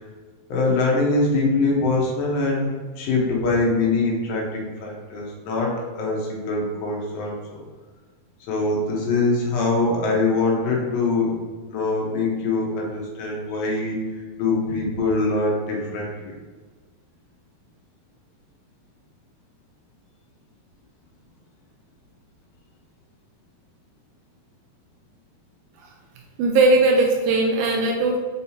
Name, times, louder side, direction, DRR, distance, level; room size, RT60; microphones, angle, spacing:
voice 1, 0.5-7.6 8.5-11.4 11.7-14.0 14.4-16.3, left 3 dB, 70° left, -3 dB, 2.8 m, -23 dB
voice 2, 26.4-28.2, right 2 dB, 80° right, 1 dB, 2.4 m, -18 dB
6.4 x 5.2 x 2.9 m, 1.4 s
omnidirectional pair, 4.3 m